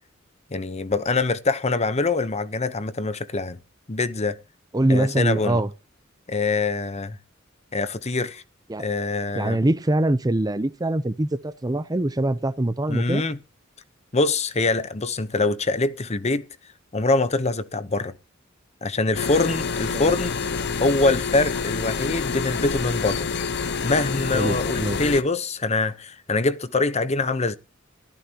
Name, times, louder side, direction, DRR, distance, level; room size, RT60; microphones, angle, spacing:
voice 1, 0.5-3.6 3.9-4.4 4.9-5.6 6.3-7.2 7.7-8.4 8.8-9.6 12.9-13.4 14.1-16.5 16.9-18.1 18.8-20.4 20.8-23.3 23.8-27.5, left 3 dB, 35° left, 0.9 m, -24 dB
voice 2, 4.7-5.7 8.7-8.9 9.3-13.2 19.9-20.2 24.3-25.0, right 1 dB, 20° right, 0.7 m, -23 dB
sound 1, 19.1-25.2, left 5 dB, 60° left, 1.1 m, -27 dB
23.0 x 14.5 x 3.0 m
head